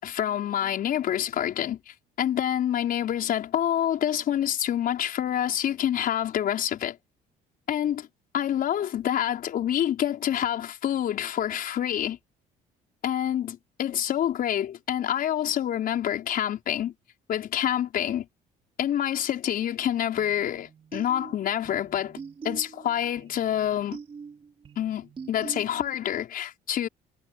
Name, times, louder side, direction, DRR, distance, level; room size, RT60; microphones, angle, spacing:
voice 1, 0.0-7.0 7.7-8.1 8.3-12.2 13.0-16.9 17.3-18.3 18.8-22.2 22.4-24.0 24.8-26.9, left 10 dB, 60° left, 5.5 m, -27 dB
sound 1, 20.2-26.1, right 5 dB, 30° right, 4.4 m, -44 dB
cardioid pair, 110°, 17 cm